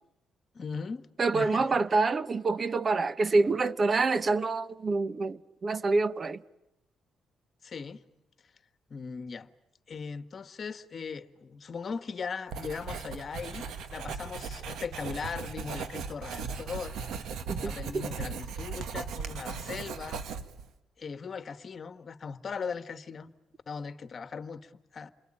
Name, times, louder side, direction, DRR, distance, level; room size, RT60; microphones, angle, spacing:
voice 1, 0.5-1.1 1.3-1.6 7.6-8.0 8.9-9.5 9.9-17.0 17.6-20.2 21.0-23.3 23.7-25.1, left 5 dB, 45° left, 1.4 m, -39 dB
voice 2, 1.2-6.4 17.5-18.0, right 3 dB, 35° right, 1.0 m, -27 dB
Writing, 12.5-20.7, right 5 dB, 75° right, 1.8 m, -38 dB
28.5 x 22.5 x 8.9 m
cardioid pair, 90°, 0 cm